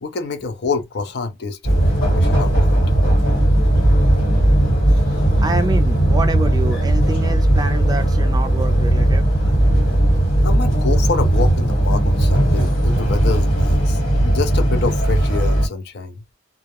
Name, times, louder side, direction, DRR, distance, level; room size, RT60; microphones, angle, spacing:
voice 1, 0.0-1.8 2.1-2.9 10.4-16.2, left 4 dB, 55° left, 0.5 m, -26 dB
sound 1, 1.6-15.7, right 1 dB, 70° left, 1.4 m, -17 dB
voice 2, 4.9-9.3, right 2 dB, 20° right, 0.4 m, -28 dB
2.3 x 2.0 x 2.8 m
head